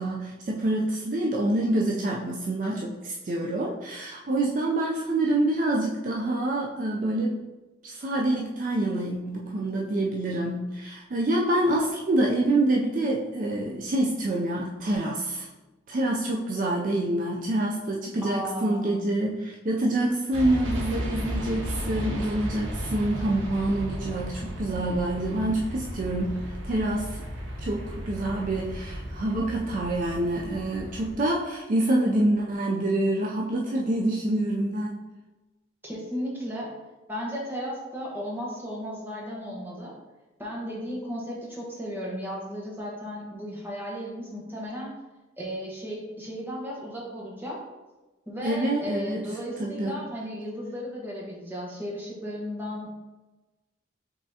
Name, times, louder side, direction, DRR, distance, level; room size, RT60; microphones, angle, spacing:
voice 1, 0.0-7.4 7.8-15.5 15.9-27.2 27.6-35.0 48.4-49.2 49.6-49.9, right 1 dB, 40° right, -1 dB, 0.4 m, -26 dB
voice 2, 18.2-19.0 35.8-36.7 37.1-39.9 40.4-44.9 45.4-47.6 48.3-53.0, equal, 10° right, -4 dB, 1.0 m, -35 dB
sound 1, 20.3-31.1, equal, 90° right, 0.9 m, -34 dB
5.4 x 3.6 x 2.7 m, 1.1 s
head